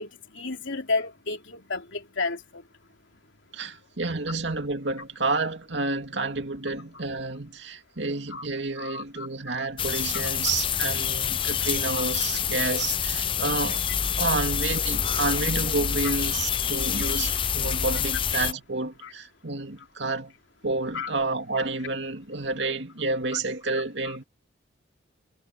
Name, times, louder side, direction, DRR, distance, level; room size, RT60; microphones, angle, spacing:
voice 1, 0.0-2.6 8.3-8.5 8.8-9.7 12.0-12.1 17.0-17.4 19.0-19.1 20.9-21.1 24.0-24.2, left 3 dB, 85° left, 3.2 m, -33 dB
voice 2, 3.5-13.8 14.2-20.3 20.6-24.2, right 3 dB, 70° right, 2.4 m, -30 dB
sound 1, 9.8-18.5, left 8 dB, 25° left, 0.6 m, -27 dB
head